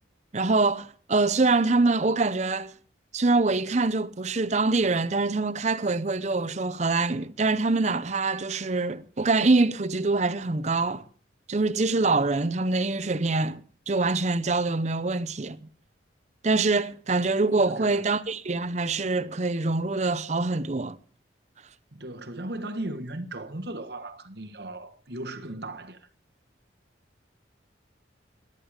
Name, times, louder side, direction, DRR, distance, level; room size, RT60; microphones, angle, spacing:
voice 1, 0.3-2.7 3.1-11.0 11.5-15.6 16.4-21.0, right 3 dB, 35° right, 0.6 m, -24 dB
voice 2, 17.6-18.2 21.9-26.1, right 1 dB, 55° right, 1.5 m, -37 dB
21.5 x 9.0 x 5.0 m
head